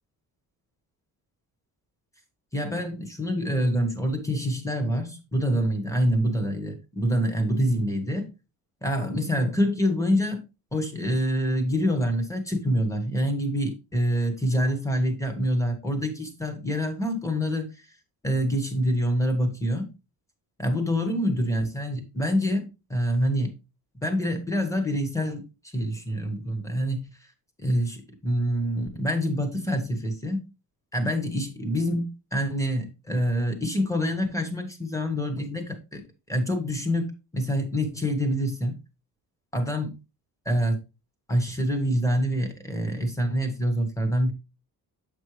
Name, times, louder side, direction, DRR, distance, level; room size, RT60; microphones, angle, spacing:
voice 1, 2.5-8.3 8.8-10.4 10.7-17.7 18.2-19.9 20.6-23.5 24.0-25.4 25.7-27.1 27.6-30.4 30.9-36.0 36.3-38.8 39.5-39.9 40.4-40.8 41.3-44.3, equal, 10° left, 6 dB, 1.3 m, -26 dB
7.9 x 5.4 x 3.2 m, 0.28 s
cardioid pair, 160°, 38 cm